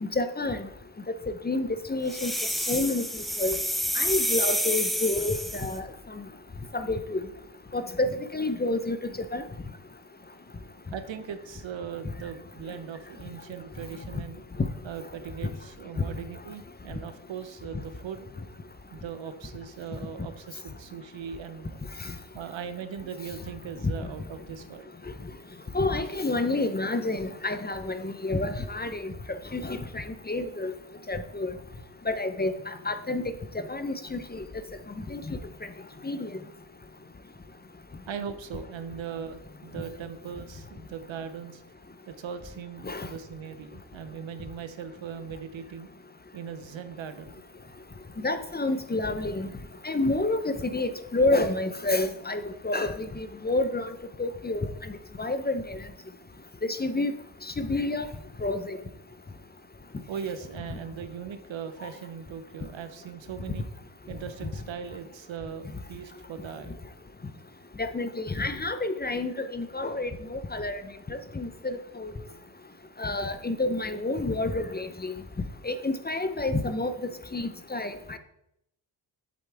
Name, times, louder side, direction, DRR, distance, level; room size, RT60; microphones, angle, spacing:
voice 1, 0.0-0.7 1.4-2.3 2.7-3.6 3.9-5.8 6.7-7.2 7.7-9.0 9.3-9.4 25.7-30.7 31.1-31.5 32.1-32.5 32.9-33.3 33.6-34.4 35.1-35.4 36.0-36.3 42.8-43.1 48.2-49.5 49.8-53.9 54.2-54.7 55.2-55.8 56.7-57.2 57.6-58.1 58.4-58.8 67.8-70.8 71.1-72.1 73.0-75.1 75.6-76.9 77.3-78.2, left 2 dB, 20° left, 10 dB, 0.8 m, -29 dB
sound 1, 2.1-5.8, equal, ahead, 1.0 m, -29 dB
voice 2, 10.9-14.4 14.8-18.3 18.9-21.8 22.3-24.9 38.1-41.6 42.1-45.9 46.3-47.4 60.1-63.6 64.1-66.7, right 7 dB, 70° right, 10 dB, 1.0 m, -39 dB
7.9 x 7.8 x 3.5 m, 0.79 s
cardioid pair, 55°, 47 cm